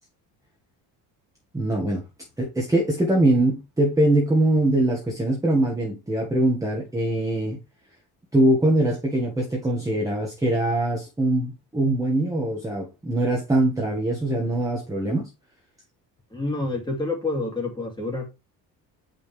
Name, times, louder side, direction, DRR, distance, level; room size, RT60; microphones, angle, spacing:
voice 1, 1.5-2.0 2.4-7.6 8.3-15.3, right 1 dB, 10° right, 1.5 m, -22 dB
voice 2, 16.3-18.2, left 2 dB, 10° left, 2.4 m, -28 dB
7.1 x 5.6 x 3.3 m
cardioid pair, 135°, 36 cm